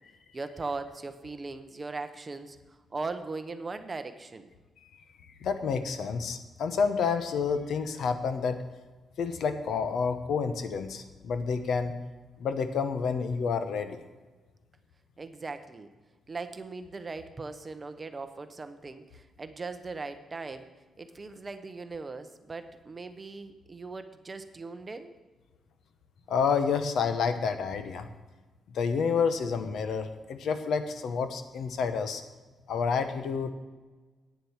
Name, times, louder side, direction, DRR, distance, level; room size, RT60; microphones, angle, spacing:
voice 1, 0.3-4.5 15.2-15.9 16.3-20.7 21.0-25.2, right 3 dB, 25° right, 9 dB, 0.7 m, -39 dB
voice 2, 5.4-8.6 9.2-11.9 12.4-14.0 26.3-28.1 28.7-32.2 32.7-33.5, left 5 dB, 70° left, 9 dB, 0.9 m, -29 dB
9.3 x 7.6 x 7.1 m, 1.2 s
cardioid pair, 140°, 0 cm